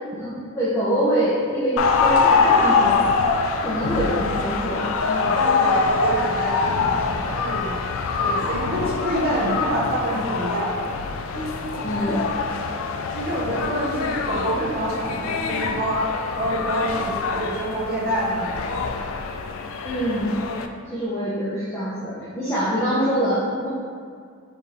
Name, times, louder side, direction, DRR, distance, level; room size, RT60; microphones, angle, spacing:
voice 1, 0.1-3.1 3.6-4.9 11.8-12.4 19.8-20.4 20.9-23.7, equal, 15° left, -10 dB, 0.7 m, -24 dB
sound 1, 1.8-20.7, left 4 dB, 75° left, 0.3 m, -24 dB
voice 2, 5.0-10.8 11.3-12.3 13.1-16.1 16.4-18.9, right 1 dB, 50° right, -4 dB, 0.9 m, -27 dB
5.0 x 2.7 x 3.7 m, 2.1 s
head